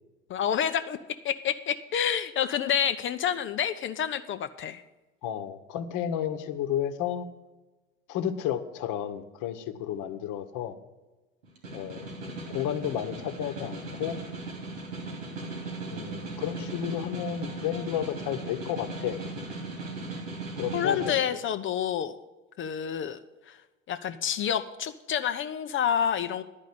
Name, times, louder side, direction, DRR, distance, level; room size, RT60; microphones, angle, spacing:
voice 1, 0.3-1.0 1.2-4.8 20.7-22.1 22.6-23.2 23.5-23.6 23.9-26.4, left 8 dB, 30° left, 10 dB, 0.5 m, -28 dB
voice 2, 5.2-7.3 8.1-10.7 11.7-12.0 12.5-14.2 15.9-19.2 20.6-21.4, left 10 dB, 50° left, 9 dB, 1.0 m, -32 dB
Snare drum, 11.4-21.2, right 2 dB, 80° right, 2.8 m, -38 dB
10.5 x 5.3 x 8.4 m, 1.1 s
hypercardioid pair, 75°, 40 cm